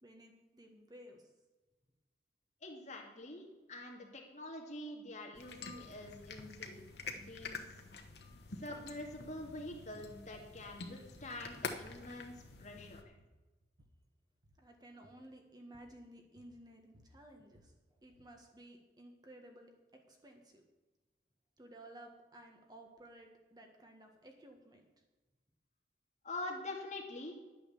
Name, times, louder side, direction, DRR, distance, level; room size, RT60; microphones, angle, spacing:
voice 1, 0.0-1.3 14.6-17.7 18.0-19.7 20.1-20.6 21.6-24.8, right 1 dB, 25° right, 3 dB, 1.4 m, -56 dB
voice 2, 2.6-6.8 7.1-7.6 8.6-12.3 12.6-13.0 26.2-27.4, left 1 dB, 40° left, 1 dB, 2.3 m, -45 dB
sound 1, 5.4-13.0, left 4 dB, 70° left, 1.1 m, -47 dB
sound 2, 9.9-10.1 10.5-11.5 11.8-12.1 12.4-12.8 13.1-14.0 14.4-14.7 15.0-15.3 15.7-16.0 16.4-18.4, right 1 dB, 75° right, 1.4 m, -65 dB
10.5 x 8.9 x 7.1 m, 1.2 s
head